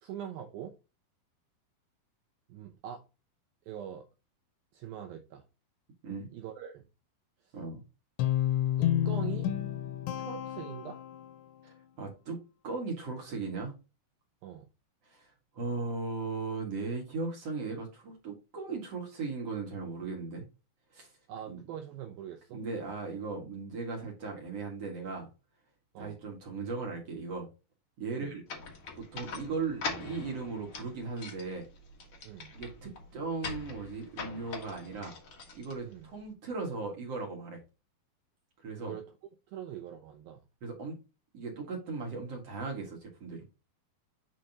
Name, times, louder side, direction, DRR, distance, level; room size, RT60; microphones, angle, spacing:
voice 1, 0.0-0.8 2.5-3.1 3.7-4.1 4.7-5.4 6.3-6.9 7.5-7.6 8.8-9.5 10.2-11.0 14.4-14.7 21.3-22.6 25.9-26.2 28.1-28.3 32.2-32.5 35.8-36.1 38.8-39.0 39.5-40.4, right 10 dB, 80° right, 2.1 m, -43 dB
voice 2, 7.5-7.8 11.6-13.7 15.0-20.5 20.9-21.1 21.5-21.6 22.5-25.3 26.0-27.5 28.0-28.4 29.0-31.7 32.5-35.1 35.5-37.6 38.6-38.9 40.6-41.0 41.3-43.4, right 4 dB, 50° right, 2.1 m, -37 dB
Guitar, 8.2-11.5, left 12 dB, 90° left, 3.3 m, -30 dB
sound 1, 28.5-36.3, left 4 dB, 70° left, 1.2 m, -43 dB
8.9 x 5.0 x 2.9 m
omnidirectional pair, 5.3 m